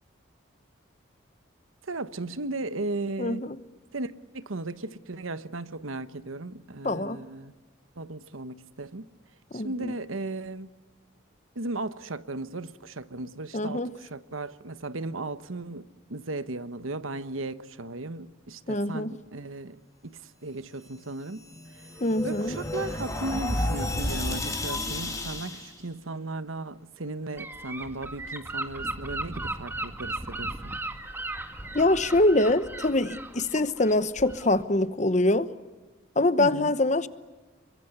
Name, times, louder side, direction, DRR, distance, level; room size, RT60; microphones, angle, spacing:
voice 1, 1.8-3.4 3.9-7.5 8.0-9.1 9.5-10.7 11.5-21.4 21.7-21.9 22.2-30.7 36.4-36.7, right 2 dB, 90° right, 1.2 m, -36 dB
voice 2, 3.2-3.6 6.8-7.2 9.5-9.9 13.5-13.9 18.7-19.1 22.0-22.6 31.7-35.5 36.2-37.1, left 2 dB, 35° left, 1.0 m, -24 dB
sound 1, 21.2-25.7, left 1 dB, 15° left, 3.1 m, -31 dB
Gull seagull / Wind, 27.4-34.6, right 2 dB, 10° right, 1.6 m, -36 dB
28.5 x 23.5 x 8.1 m
head